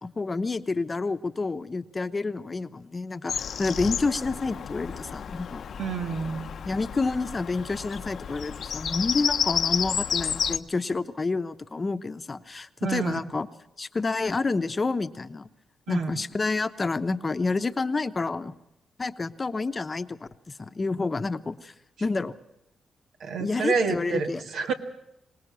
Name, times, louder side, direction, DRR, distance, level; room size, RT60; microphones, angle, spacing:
voice 1, 0.0-5.6 6.7-13.5 13.8-15.5 15.9-18.5 19.0-21.7 22.0-22.3 23.4-24.4, left 3 dB, 30° left, 10 dB, 0.9 m, -29 dB
Bird vocalization bird call bird song, 3.3-10.6, left 7 dB, 65° left, 0.8 m, -31 dB
voice 2, 5.8-6.5 12.8-13.2 15.9-16.1 23.2-24.7, right 5 dB, 80° right, 5 dB, 1.9 m, -28 dB
25.0 x 19.0 x 6.2 m, 0.84 s
cardioid pair, 100°, 0 cm